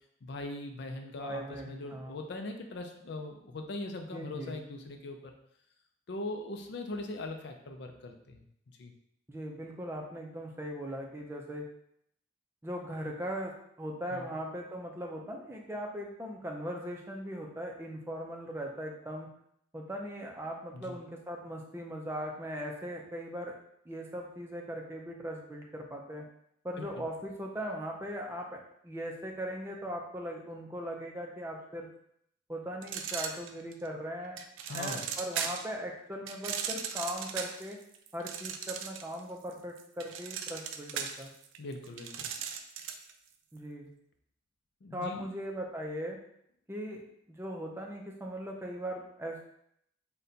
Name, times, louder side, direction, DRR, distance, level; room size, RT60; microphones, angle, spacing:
voice 1, 0.2-5.3 6.1-8.5 8.8-8.9 14.1-14.3 20.7-21.0 26.8-27.0 34.7-35.0 41.6-42.1 44.8-45.3, left 2 dB, 60° left, 4 dB, 0.5 m, -40 dB
voice 2, 1.2-2.2 4.1-4.5 9.3-11.6 12.6-13.5 13.8-19.3 19.7-23.5 23.9-26.2 26.6-28.6 28.8-31.9 32.5-34.4 34.7-37.8 38.1-41.3 43.5-43.9 44.9-46.2 46.7-47.0 47.3-49.4, equal, 15° right, 0 dB, 0.5 m, -39 dB
sound 1, 32.8-33.9 34.4-35.7 36.3-39.2 39.5-43.1, right 7 dB, 80° right, 0.4 m, -37 dB
4.1 x 2.2 x 3.9 m, 0.72 s
head